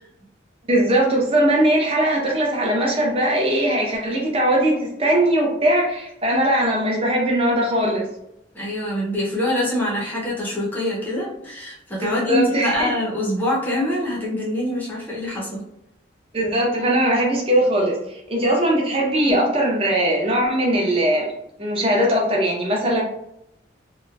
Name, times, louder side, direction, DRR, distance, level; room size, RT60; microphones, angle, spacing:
voice 1, 0.7-8.1 12.0-12.9 16.3-21.3 21.6-23.0, right 1 dB, 30° right, -2 dB, 0.7 m, -20 dB
voice 2, 8.5-15.6, left 1 dB, 10° left, -5 dB, 0.6 m, -24 dB
2.9 x 2.1 x 2.3 m, 0.81 s
head